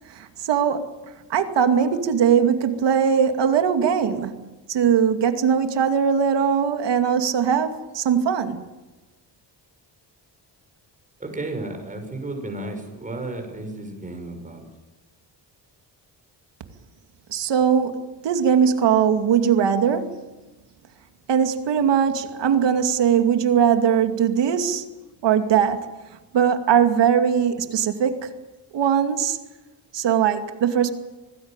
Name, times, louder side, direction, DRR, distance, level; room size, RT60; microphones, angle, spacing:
voice 1, 0.2-0.9 1.3-4.3 4.7-8.6 17.3-20.2 21.3-24.8 25.2-25.8 26.3-28.3 28.7-29.4 29.9-30.9, right 7 dB, 75° right, 2.6 m, -20 dB
voice 2, 11.2-14.6, right 2 dB, 20° right, 6.1 m, -33 dB
26.0 x 19.5 x 9.0 m
wide cardioid pair, 165°, 43 cm